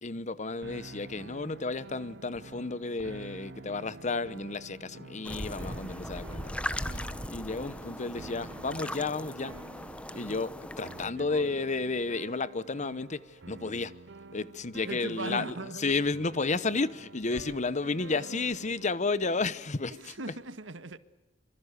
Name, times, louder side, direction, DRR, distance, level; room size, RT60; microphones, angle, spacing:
voice 1, 0.0-6.6 6.9-9.5 10.1-14.0 14.3-20.2, left 3 dB, 40° left, 1.0 m, -32 dB
sound 1, 0.6-19.9, right 3 dB, 65° right, 0.9 m, -48 dB
sound 2, 1.9-20.2, equal, 65° left, 5.7 m, -63 dB
sound 3, 5.2-11.1, left 1 dB, 5° left, 1.0 m, -38 dB
voice 2, 11.1-11.6 14.8-16.0 19.9-21.0, right 2 dB, 90° right, 1.8 m, -39 dB
25.5 x 25.5 x 8.2 m
head